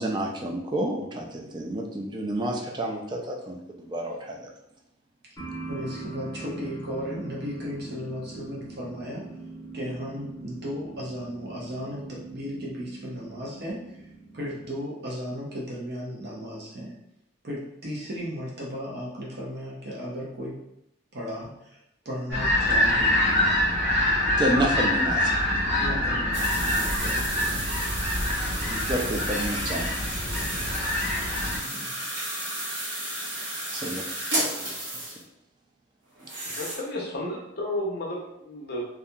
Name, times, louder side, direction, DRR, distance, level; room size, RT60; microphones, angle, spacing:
voice 1, 0.0-4.5 24.3-25.3 28.7-30.0 33.7-34.0 34.6-34.9, right 1 dB, 25° right, 1 dB, 0.3 m, -30 dB
sound 1, 5.4-14.9, right 3 dB, 15° left, 0.8 m, -41 dB
voice 2, 5.7-9.3 9.7-17.0 17.4-20.6 21.1-23.3 25.8-27.6 31.6-32.0 33.7-34.0, equal, 55° right, -4 dB, 0.7 m, -36 dB
sound 2, 22.3-31.6, left 1 dB, 90° right, 1.1 m, -25 dB
sound 3, 26.3-35.2 36.2-36.8, right 1 dB, 70° right, 1.1 m, -32 dB
voice 3, 36.4-38.9, left 1 dB, 55° left, -1 dB, 0.6 m, -32 dB
2.7 x 2.4 x 2.2 m, 0.80 s
head